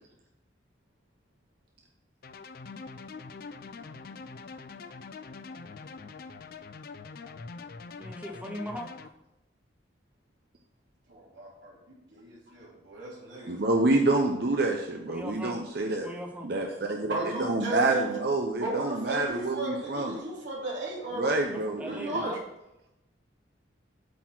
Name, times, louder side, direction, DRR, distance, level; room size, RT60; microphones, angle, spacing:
sound 1, 2.2-9.1, left 4 dB, 50° left, 0.4 m, -44 dB
voice 1, 8.0-8.9 15.1-15.6 16.0-16.5 21.5-22.4, equal, 5° right, 1 dB, 0.8 m, -39 dB
voice 2, 11.1-11.8 12.1-13.6 17.0-18.1 18.6-21.4 21.8-22.4, right 2 dB, 75° right, -5 dB, 3.0 m, -35 dB
voice 3, 13.5-16.1 16.4-20.2 21.2-22.3, right 2 dB, 55° right, 2 dB, 0.7 m, -27 dB
8.3 x 4.2 x 6.0 m, 0.90 s
head